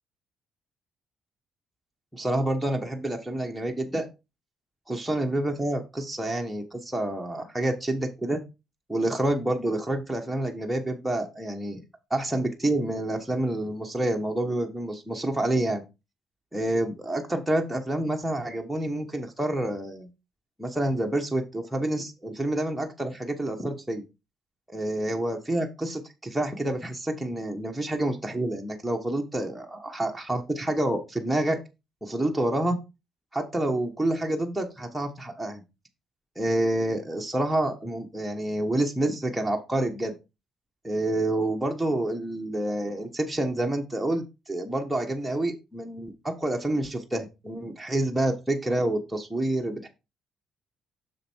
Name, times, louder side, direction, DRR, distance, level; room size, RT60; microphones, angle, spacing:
voice 1, 2.1-4.1 4.9-8.4 8.9-11.8 12.1-15.8 16.5-20.1 20.6-24.0 24.7-31.6 32.0-32.8 33.3-35.6 36.4-40.1 40.8-49.9, right 1 dB, 5° right, 1 dB, 1.1 m, -28 dB
6.3 x 4.8 x 4.5 m, 0.26 s
cardioid pair, 95°, 0 cm